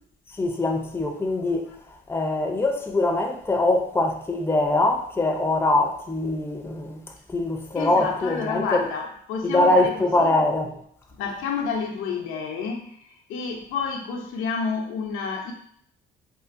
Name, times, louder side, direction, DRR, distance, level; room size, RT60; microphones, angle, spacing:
voice 1, 0.4-1.7 2.1-7.0 7.3-8.9 9.4-10.8, left 2 dB, 10° left, 0.5 m, -23 dB
voice 2, 7.7-10.1 11.2-15.5, left 5 dB, 90° left, 0.6 m, -29 dB
3.7 x 2.6 x 2.5 m
cardioid pair, 90°, 20 cm